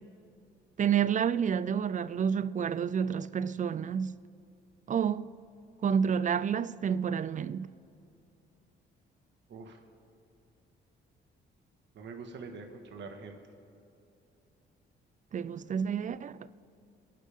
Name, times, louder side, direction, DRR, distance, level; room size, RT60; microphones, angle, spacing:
voice 1, 0.8-4.2 4.9-5.3 5.8-7.7 15.3-16.5, right 7 dB, 40° right, 0.5 m, -29 dB
voice 2, 9.5-9.8 11.9-13.4, right 4 dB, 65° right, 1.9 m, -44 dB
27.5 x 11.5 x 3.7 m
cardioid pair, 90°, 20 cm